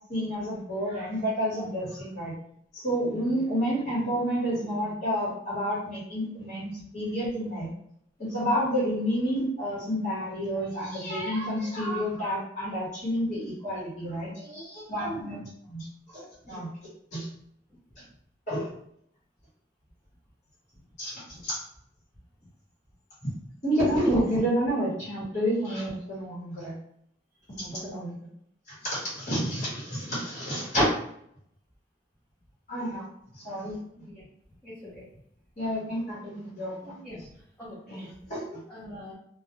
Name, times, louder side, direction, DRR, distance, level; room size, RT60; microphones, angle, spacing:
voice 1, 0.1-2.3 2.7-7.7 8.2-16.7 17.1-17.3 18.0-18.1 18.5-18.7 21.0-21.6 23.2-23.3 23.6-26.8 27.5-28.1 28.7-30.8 32.7-33.0 33.3-33.8 35.6-37.0 37.9-38.6, equal, 40° left, -8 dB, 1.1 m, -30 dB
voice 2, 34.6-35.1 37.0-37.3 37.6-38.1 38.7-39.1, left 1 dB, 5° left, -10 dB, 0.6 m, -44 dB
2.3 x 2.2 x 2.9 m, 0.70 s
head